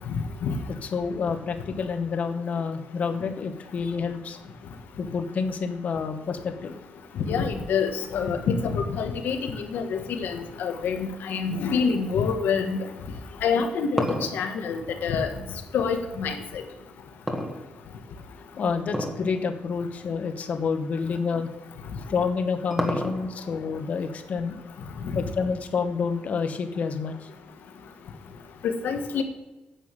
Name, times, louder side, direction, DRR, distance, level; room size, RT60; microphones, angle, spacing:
voice 1, 0.8-4.4 5.0-6.7 18.6-21.5 22.1-24.6 25.1-27.3, left 5 dB, 50° left, 6 dB, 1.4 m, -28 dB
voice 2, 7.3-12.8 13.4-14.0 14.3-15.3 15.7-16.4 25.0-25.2 28.8-29.2, left 6 dB, 80° left, 5 dB, 1.7 m, -26 dB
sound 1, 13.4-15.9 17.3-18.1 18.9-19.3 19.6-19.7 20.5-20.6 22.0-23.5, equal, 5° right, 1.6 m, -30 dB
10.5 x 7.2 x 7.6 m, 1.1 s
wide cardioid pair, 150°, 3 cm